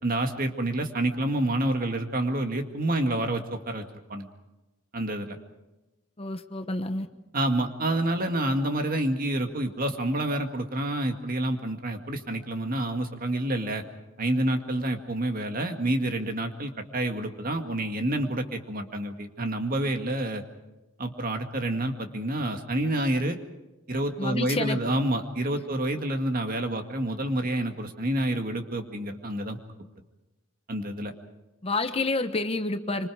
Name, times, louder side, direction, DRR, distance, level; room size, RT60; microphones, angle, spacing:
voice 1, 0.0-4.3 4.9-5.4 7.3-13.8 14.2-20.4 21.0-23.4 23.9-29.6 30.7-31.1, right 1 dB, 45° right, 5 dB, 2.1 m, -28 dB
voice 2, 6.2-7.1 24.2-24.8 31.6-33.1, left 2 dB, 30° left, 8 dB, 1.1 m, -29 dB
26.5 x 25.5 x 4.9 m, 1.0 s
head